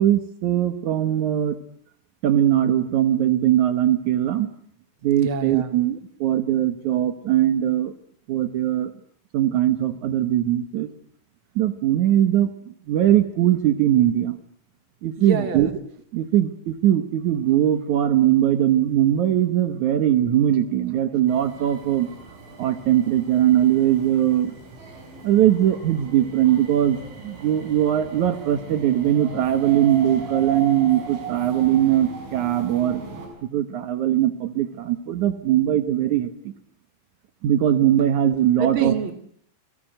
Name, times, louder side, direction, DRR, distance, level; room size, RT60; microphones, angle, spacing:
voice 1, 0.0-1.6 2.2-4.5 5.0-7.9 8.3-8.9 9.3-10.9 11.5-14.4 15.0-15.7 16.1-22.1 22.6-24.5 25.2-33.0 33.5-36.5 37.4-38.9, right 11 dB, 85° right, 10 dB, 1.7 m, -20 dB
voice 2, 5.2-5.8 15.2-15.7 38.0-38.1 38.6-39.1, right 6 dB, 40° right, 9 dB, 2.0 m, -27 dB
sound 1, 21.3-33.3, right 3 dB, 70° right, 8.5 m, -38 dB
28.5 x 23.0 x 7.9 m, 0.63 s
omnidirectional pair, 5.6 m